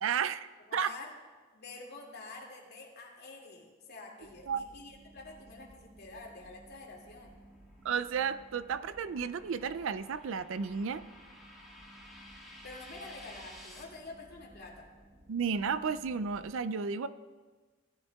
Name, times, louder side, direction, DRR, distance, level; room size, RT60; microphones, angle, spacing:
voice 1, 0.0-0.9 4.5-4.6 7.8-11.0 15.3-17.1, right 6 dB, 70° right, 14 dB, 0.4 m, -33 dB
voice 2, 0.7-1.1 1.5-7.3 12.6-14.9, left 3 dB, 55° left, -1 dB, 2.3 m, -48 dB
sound 1, 4.2-16.5, right 1 dB, 45° right, 1.3 m, -57 dB
sound 2, 7.0-13.8, left 1 dB, ahead, 2.4 m, -54 dB
18.0 x 11.5 x 2.3 m, 1.4 s
head